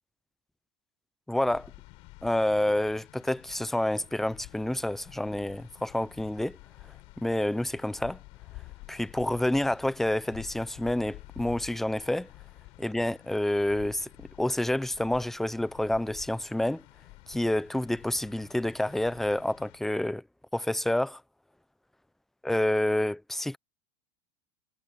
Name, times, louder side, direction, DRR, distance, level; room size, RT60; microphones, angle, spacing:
voice 1, 1.3-1.7 2.2-6.6 7.2-8.2 8.9-12.3 12.8-16.8 17.3-20.2 20.5-21.2 22.4-23.6, left 1 dB, 5° left, 0.6 m, -28 dB
sound 1, 1.4-19.8, left 23 dB, 60° left, 3.8 m, -50 dB
supercardioid pair, 130°, 12 cm